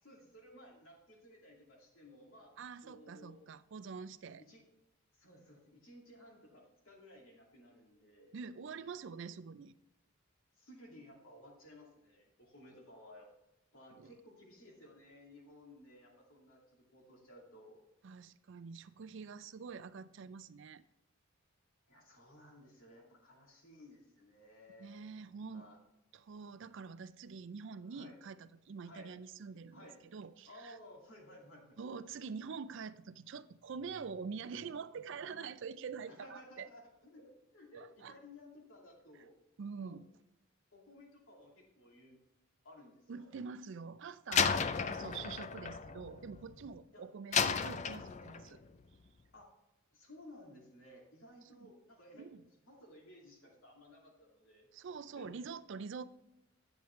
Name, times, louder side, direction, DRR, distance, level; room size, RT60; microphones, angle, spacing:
voice 1, 0.0-2.5 2.8-3.4 4.4-4.6 5.1-8.3 10.6-13.3 13.7-17.8 21.9-24.9 25.4-25.8 27.9-28.2 28.8-29.1 29.7-30.0 30.5-31.8 35.2-35.4 36.1-39.3 39.8-40.0 40.7-42.2 42.6-43.3 44.8-45.0 46.9-47.0 49.3-49.5 49.9-52.3 52.7-54.7 55.2-55.4, left 1 dB, 70° left, 2.4 m, -57 dB
voice 2, 2.6-4.4 8.3-9.8 14.0-14.1 18.0-20.8 24.8-25.7 26.1-30.8 31.8-36.7 37.7-38.1 39.6-40.1 43.1-48.6 52.2-52.4 54.7-56.0, right 5 dB, 60° right, 0.4 m, -46 dB
Slam, 44.3-46.7 47.3-48.6, left 6 dB, 35° left, 0.4 m, -33 dB
9.3 x 7.1 x 3.2 m
head